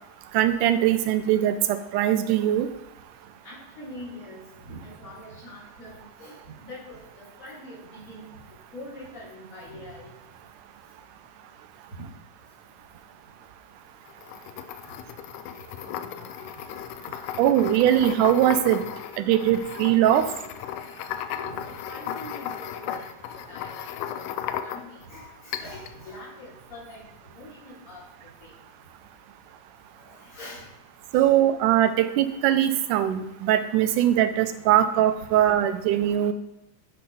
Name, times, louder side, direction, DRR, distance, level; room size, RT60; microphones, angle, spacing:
voice 1, 0.3-2.7 17.4-18.8 19.2-20.3 31.1-36.3, right 11 dB, 80° right, 10 dB, 2.2 m, -21 dB
voice 2, 3.4-10.1 11.9-12.0 21.3-23.1 23.5-24.3 24.6-27.0 27.3-28.5 30.0-30.7 31.1-31.3, left 1 dB, 45° left, -7 dB, 4.3 m, -43 dB
sound 1, 14.1-25.1 25.5-26.0, left 10 dB, 85° left, 2.1 m, -35 dB
10.0 x 4.4 x 5.4 m, 0.95 s
omnidirectional pair, 3.6 m